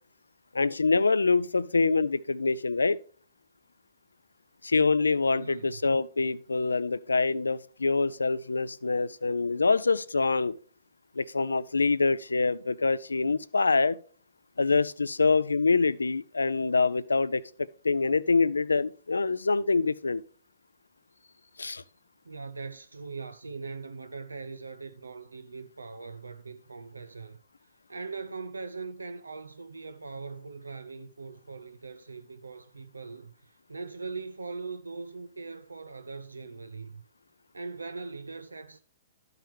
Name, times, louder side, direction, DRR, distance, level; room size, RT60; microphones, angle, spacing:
voice 1, 0.5-3.0 4.6-10.5 11.2-14.0 14.6-20.2 21.6-21.8, left 4 dB, 85° left, 0.4 m, -25 dB
voice 2, 5.4-5.8 22.2-27.4 27.9-37.0 37.5-38.8, right 4 dB, 85° right, 0.5 m, -41 dB
12.5 x 5.7 x 3.4 m
figure-of-eight pair, 120°, 0 cm